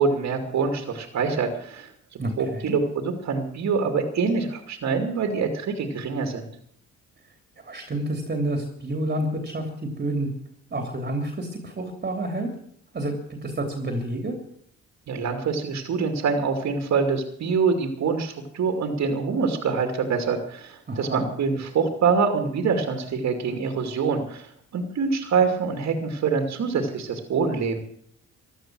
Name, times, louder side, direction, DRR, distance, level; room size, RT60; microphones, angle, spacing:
voice 1, 0.0-6.5 15.1-27.8, right 5 dB, 65° right, 4 dB, 2.6 m, -25 dB
voice 2, 2.2-2.7 7.6-10.3 10.7-12.5 12.9-14.3 20.9-21.3, right 1 dB, 30° right, 3 dB, 3.1 m, -29 dB
15.5 x 12.5 x 6.3 m, 0.65 s
cardioid pair, 90°, 30 cm